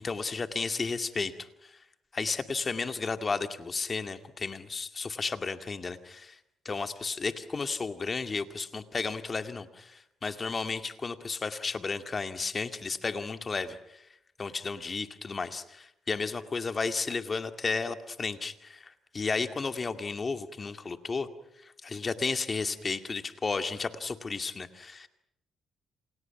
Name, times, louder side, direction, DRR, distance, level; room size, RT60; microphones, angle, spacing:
voice 1, 0.0-1.8 2.1-6.4 6.6-14.0 14.4-21.3 21.6-25.1, left 4 dB, 35° left, 8 dB, 2.2 m, -33 dB
29.0 x 28.0 x 6.0 m, 0.78 s
cardioid pair, 90°, 0 cm